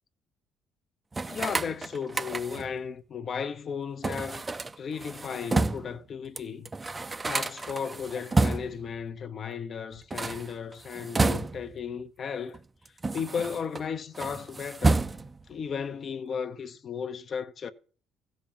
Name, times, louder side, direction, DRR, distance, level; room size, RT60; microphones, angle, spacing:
sound 1, 1.1-2.8 4.0-6.0 6.4-6.5 6.7-8.9 10.0-11.8 12.5-13.8 14.1-15.5, right 3 dB, 20° right, 0.5 m, -29 dB
voice 1, 1.3-4.5 4.8-6.7 7.2-12.6 13.1-15.1 15.5-17.7, left 6 dB, 45° left, 0.9 m, -35 dB
15.5 x 5.3 x 7.4 m
cardioid pair, 100°, 0 cm